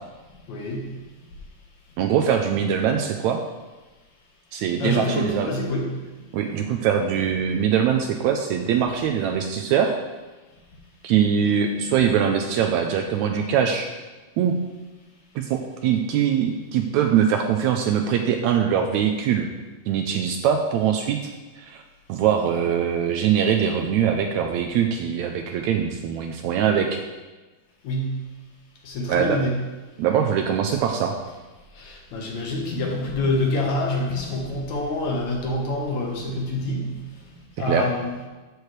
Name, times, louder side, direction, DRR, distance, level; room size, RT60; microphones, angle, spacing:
voice 1, 0.5-1.0 4.8-6.0 27.8-28.3 28.8-29.6 31.8-37.0 37.6-38.1, left 1 dB, 65° left, -1 dB, 2.6 m, -26 dB
voice 2, 2.0-3.4 4.5-5.5 6.3-10.0 11.0-13.9 14.4-14.6 15.4-19.5 19.9-21.2 21.6-21.8 22.1-27.0 29.1-29.4 30.0-31.2 37.7-37.9, right 8 dB, 80° right, 4 dB, 1.7 m, -22 dB
13.0 x 6.5 x 3.2 m, 1.2 s
omnidirectional pair, 3.6 m